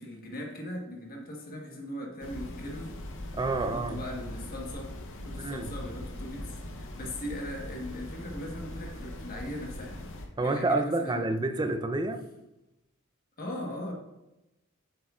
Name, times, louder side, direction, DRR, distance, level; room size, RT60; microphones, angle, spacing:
voice 1, 0.0-2.9 3.5-4.9 5.2-11.6 13.4-13.9, left 1 dB, 40° left, 1.4 m, -39 dB
sound 1, 2.2-10.3, left 1 dB, 60° left, 0.9 m, -41 dB
voice 2, 3.4-4.0 5.4-5.8 10.4-12.2, right 2 dB, 20° right, 0.5 m, -29 dB
8.1 x 7.5 x 2.5 m
head